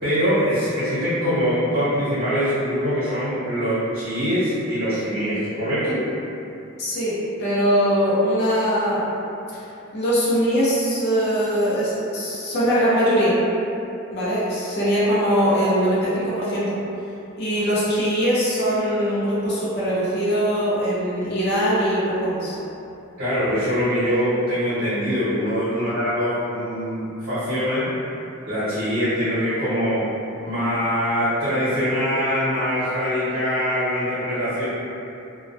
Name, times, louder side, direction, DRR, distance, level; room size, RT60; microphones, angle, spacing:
voice 1, 0.0-6.0 23.2-27.9 28.5-30.0 30.4-34.7, equal, 45° right, -14 dB, 0.8 m, -23 dB
voice 2, 6.8-9.0 9.9-13.4 14.1-16.7 17.4-22.5, equal, 50° left, -9 dB, 0.5 m, -21 dB
2.2 x 2.1 x 2.6 m, 2.8 s
head